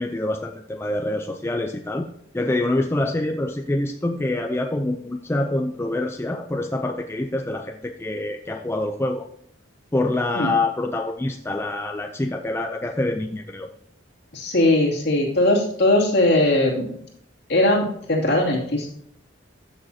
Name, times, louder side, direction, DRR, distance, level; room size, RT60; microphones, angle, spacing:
voice 1, 0.0-2.1 2.3-9.3 9.9-13.7, left 2 dB, 15° left, 4 dB, 0.4 m, -26 dB
voice 2, 14.3-17.0 17.5-18.9, left 1 dB, 55° left, -3 dB, 2.6 m, -20 dB
14.0 x 6.4 x 2.8 m, 0.68 s
head